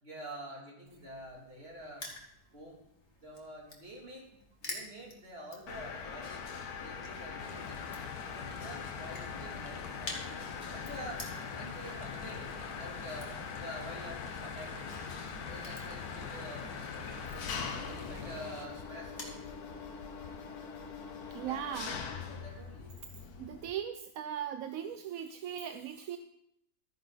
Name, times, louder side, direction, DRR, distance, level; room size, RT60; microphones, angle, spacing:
voice 1, 0.0-2.1 2.5-2.8 3.2-4.3 4.6-6.4 6.8-7.8 8.3-11.3 11.6-14.9 15.5-17.5 17.9-19.4 21.4-23.0, equal, 35° right, -2 dB, 3.1 m, -47 dB
Crushing, 0.9-19.4, left 2 dB, 40° left, 2.2 m, -51 dB
Mechanisms, 5.7-23.7, left 6 dB, 65° left, 1.6 m, -42 dB
sound 1, 7.4-18.7, left 5 dB, 85° left, 1.8 m, -46 dB
voice 2, 21.3-21.9 23.4-26.2, right 9 dB, 65° right, 9 dB, 0.9 m, -38 dB
13.5 x 9.8 x 4.1 m, 0.78 s
omnidirectional pair, 1.8 m